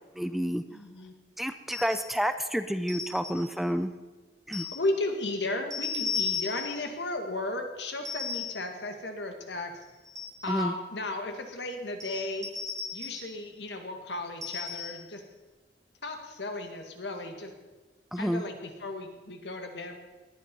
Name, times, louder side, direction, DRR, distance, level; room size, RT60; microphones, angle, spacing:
voice 1, 0.1-0.6 1.4-3.9 4.5-4.7 10.5-10.7 18.1-18.4, equal, ahead, 10 dB, 0.5 m, -29 dB
voice 2, 0.7-1.1 4.7-9.8 10.4-12.5 12.9-15.2 16.0-17.5 18.2-20.0, left 2 dB, 80° left, 5 dB, 2.0 m, -35 dB
sound 1, 1.7-2.1 2.9-3.5 4.5-4.9 5.7-6.9 8.0-8.7 9.8-10.5 12.0-13.3 14.4-15.1, left 5 dB, 20° right, 2.6 m, -35 dB
19.0 x 10.5 x 5.4 m, 1.2 s
head